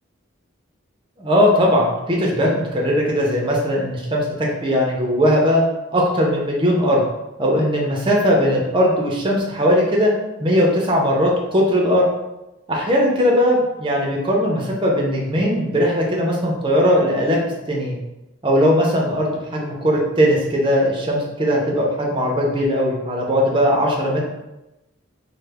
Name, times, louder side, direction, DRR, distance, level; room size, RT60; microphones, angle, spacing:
voice 1, 1.2-5.6 5.9-7.0 7.4-10.1 10.4-12.1 12.7-17.4 17.7-18.0 18.4-24.2, equal, 25° right, -2 dB, 0.6 m, -19 dB
3.1 x 2.1 x 3.4 m, 0.97 s
head